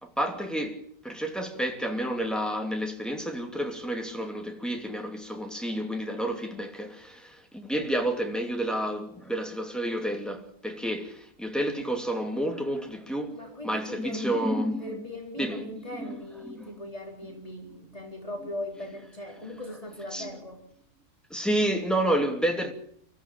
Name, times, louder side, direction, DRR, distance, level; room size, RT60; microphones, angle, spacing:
voice 1, 0.0-15.0 15.4-16.7 20.1-20.3 21.3-22.7, right 1 dB, ahead, 2.7 m, -30 dB
voice 2, 13.3-14.3 14.8-20.6, left 1 dB, 25° left, 4.1 m, -39 dB
24.5 x 14.5 x 8.7 m
omnidirectional pair, 1.5 m